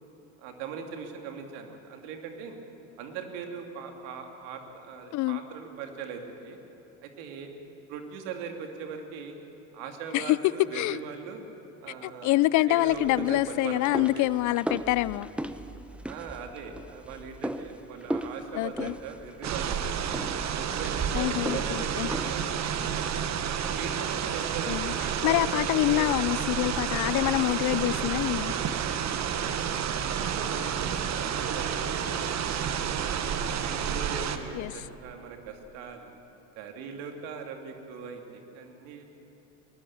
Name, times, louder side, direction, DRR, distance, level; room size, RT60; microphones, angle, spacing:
voice 1, 0.4-2.6 3.0-6.6 7.0-7.5 7.9-9.3 9.7-11.4 11.8-14.3 16.1-20.0 20.6-22.6 22.9-23.3 23.6-26.2 26.8-27.4 28.4-28.7 30.2-32.2 33.4-36.1 36.6-39.0, right 5 dB, 70° right, 4 dB, 2.6 m, -40 dB
voice 2, 10.1-11.0 12.0-15.3 18.5-19.0 21.1-22.1 24.7-24.9 25.2-28.5 34.5-34.8, left 17 dB, 50° left, 19 dB, 0.6 m, -26 dB
sound 1, 12.9-22.6, right 1 dB, 5° right, 1.0 m, -38 dB
sound 2, 19.4-34.4, right 8 dB, 45° right, 1.4 m, -30 dB
21.0 x 19.5 x 7.2 m, 3.0 s
hypercardioid pair, 75°, 40 cm